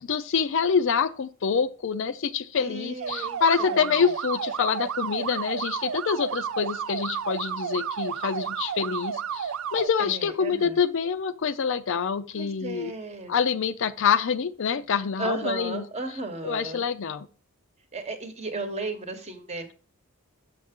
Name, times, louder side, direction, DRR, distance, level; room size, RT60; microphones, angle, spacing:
voice 1, 0.0-12.9 13.3-15.8 16.4-17.3, left 6 dB, 60° left, 0.4 m, -26 dB
voice 2, 2.5-4.1 10.0-10.8 12.3-13.3 15.2-16.8 17.9-19.7, right 2 dB, 30° right, 1.0 m, -34 dB
sound 1, 3.0-9.9, right 7 dB, 70° right, 0.4 m, -32 dB
6.7 x 6.4 x 3.6 m
head